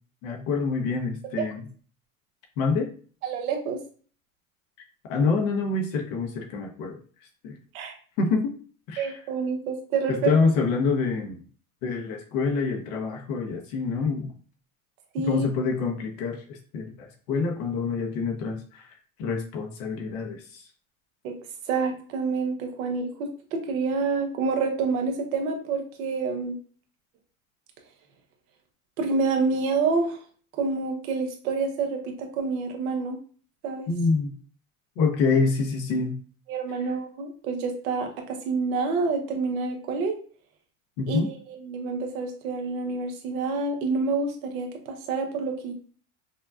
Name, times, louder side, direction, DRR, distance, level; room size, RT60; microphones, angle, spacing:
voice 1, 0.2-1.7 2.6-2.9 5.1-7.0 7.4-7.6 8.2-8.5 8.9-9.2 10.1-11.4 11.8-14.3 15.2-18.9 19.2-20.6 33.9-34.3 35.0-36.1 41.0-41.3, left 4 dB, 65° left, 3 dB, 1.2 m, -26 dB
voice 2, 3.2-3.8 7.7-7.9 9.0-10.3 15.1-15.5 21.2-21.4 21.7-26.6 29.0-30.2 30.6-33.2 33.6-33.9 36.5-40.2 41.1-45.7, right 4 dB, 75° right, 4 dB, 1.1 m, -28 dB
5.4 x 2.3 x 2.5 m, 0.42 s
supercardioid pair, 120°, 42 cm